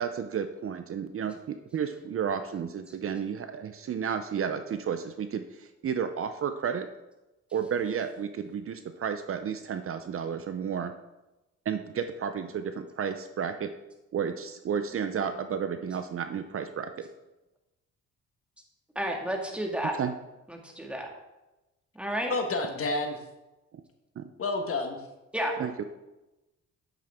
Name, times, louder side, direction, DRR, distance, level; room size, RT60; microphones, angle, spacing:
voice 1, 0.0-6.9 7.5-10.9 11.7-13.7 14.1-17.1 19.9-20.1 24.2-24.3 25.6-25.8, right 7 dB, 45° right, 9 dB, 0.6 m, -32 dB
voice 2, 19.0-19.9 20.5-21.1 22.0-22.3 25.3-25.5, equal, 5° right, 1 dB, 1.9 m, -31 dB
voice 3, 22.3-23.2 24.4-25.0, left 2 dB, 50° left, 5 dB, 1.4 m, -29 dB
8.9 x 7.6 x 3.6 m, 1.0 s
cardioid pair, 90°, 30 cm